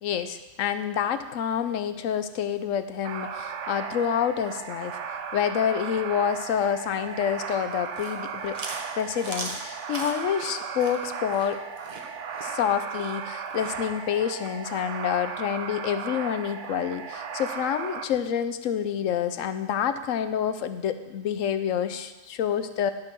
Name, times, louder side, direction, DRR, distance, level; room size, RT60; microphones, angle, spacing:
voice 1, 0.0-5.0 5.3-8.6 9.0-11.6 12.4-22.9, left 8 dB, 80° left, 11 dB, 1.0 m, -28 dB
sound 1, 3.0-18.0, right 6 dB, 70° right, 1.0 m, -36 dB
Chewing mastication, 7.7-13.8, right 2 dB, 35° right, 1.1 m, -39 dB
11.0 x 5.8 x 6.0 m, 1.1 s
omnidirectional pair, 1.3 m